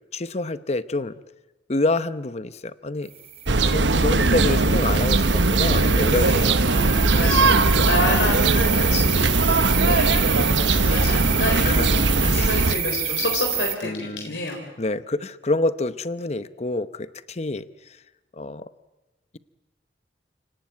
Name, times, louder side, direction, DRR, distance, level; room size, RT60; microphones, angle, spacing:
voice 1, 0.1-1.1 1.7-3.1 3.6-6.6 6.9-7.1 9.8-10.0 11.6-12.5 13.8-14.3 14.8-17.7 18.4-18.7, left 2 dB, 35° left, 14 dB, 0.8 m, -27 dB
sound 1, 3.1-13.7, right 10 dB, 35° right, 1.3 m, -29 dB
sound 2, 3.5-12.7, right 3 dB, 90° right, 1.1 m, -20 dB
voice 2, 5.6-14.7, left 2 dB, 85° left, 1 dB, 4.2 m, -29 dB
28.5 x 18.0 x 9.4 m, 1.1 s
head